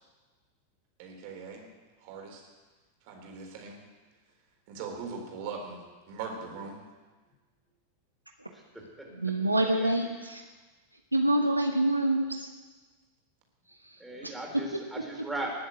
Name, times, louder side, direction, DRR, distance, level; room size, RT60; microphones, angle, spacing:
voice 1, 1.0-1.6 2.0-2.4 3.1-3.8 4.7-6.8 14.5-14.6, right 5 dB, 50° right, 1 dB, 4.1 m, -40 dB
voice 2, 8.5-9.1 9.6-9.9 14.0-15.5, right 1 dB, 5° right, -2 dB, 4.4 m, -39 dB
voice 3, 9.2-10.4 11.1-12.4 14.2-14.3, right 1 dB, 85° right, 3 dB, 1.2 m, -26 dB
19.5 x 7.9 x 8.4 m, 1.3 s
figure-of-eight pair, 90°, 0 cm